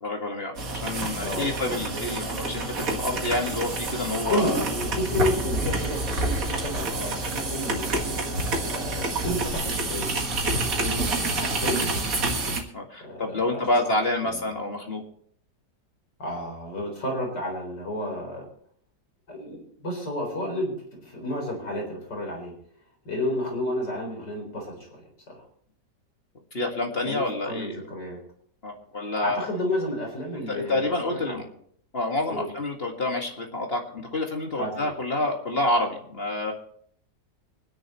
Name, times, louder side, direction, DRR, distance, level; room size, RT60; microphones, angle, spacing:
voice 1, 0.0-4.6 6.9-7.1 12.7-15.0 26.5-27.8 28.6-29.5 30.5-31.4 31.9-36.5, left 2 dB, 35° left, 2 dB, 2.0 m, -28 dB
sound 1, 0.6-12.6, right 2 dB, 50° right, 2.1 m, -28 dB
voice 2, 1.2-1.6 4.2-7.9 8.6-10.2 10.4-12.2 13.0-14.4 16.2-18.5 19.3-22.5 23.0-25.4 27.0-28.2 29.2-31.4 32.3-32.5 34.6-34.9, left 1 dB, 75° left, 0 dB, 4.6 m, -31 dB
25.0 x 10.5 x 3.1 m, 0.63 s
omnidirectional pair, 1.9 m